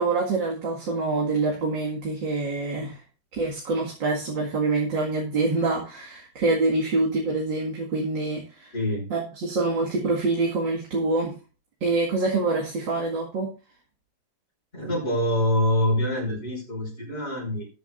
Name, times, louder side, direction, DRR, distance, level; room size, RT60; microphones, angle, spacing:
voice 1, 0.0-3.0 3.3-8.7 9.1-11.3 11.8-13.5, right 3 dB, 75° right, -3 dB, 2.8 m, -26 dB
voice 2, 8.7-9.1 14.7-17.7, left 1 dB, 30° left, -3 dB, 5.9 m, -25 dB
19.5 x 7.6 x 2.6 m, 0.33 s
omnidirectional pair, 2.0 m